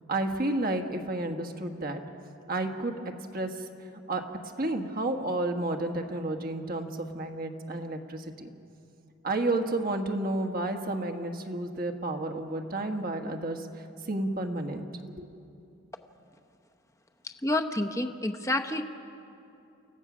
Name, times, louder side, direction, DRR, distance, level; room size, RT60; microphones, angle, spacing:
voice 1, 0.1-2.0 2.5-2.9 3.3-3.6 4.1-8.5 9.2-14.9 15.1-15.3, right 2 dB, 45° right, 4 dB, 1.4 m, -31 dB
voice 2, 17.2-18.8, left 1 dB, 15° left, 4 dB, 0.9 m, -29 dB
29.5 x 15.0 x 6.1 m, 2.7 s
head